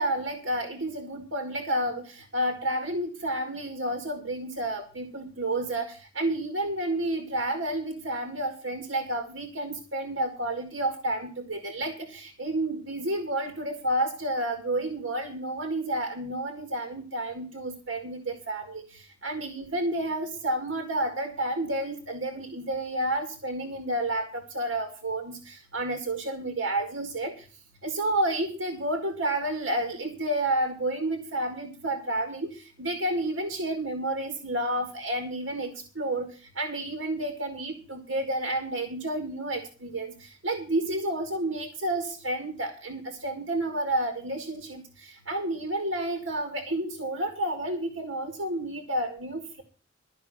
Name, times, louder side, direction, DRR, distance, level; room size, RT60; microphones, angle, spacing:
voice 1, 0.0-27.5 27.8-49.6, right 1 dB, 80° right, 5 dB, 2.0 m, -30 dB
13.0 x 5.6 x 9.0 m, 0.38 s
head